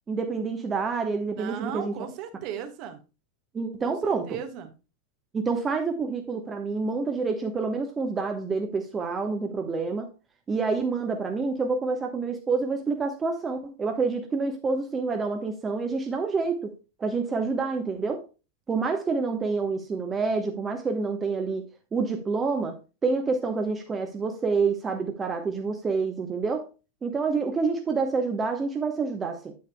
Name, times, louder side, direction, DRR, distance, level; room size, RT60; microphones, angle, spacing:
voice 1, 0.1-1.9 3.5-4.2 5.3-10.1 10.5-16.7 17.0-18.2 18.7-21.6 21.9-22.8 23.0-26.6 27.0-29.5, right 4 dB, 20° right, 4 dB, 1.1 m, -27 dB
voice 2, 1.4-3.0 3.8-4.7, right 9 dB, 40° right, 8 dB, 1.4 m, -36 dB
9.5 x 8.5 x 2.2 m, 0.30 s
figure-of-eight pair, 90°, 0 cm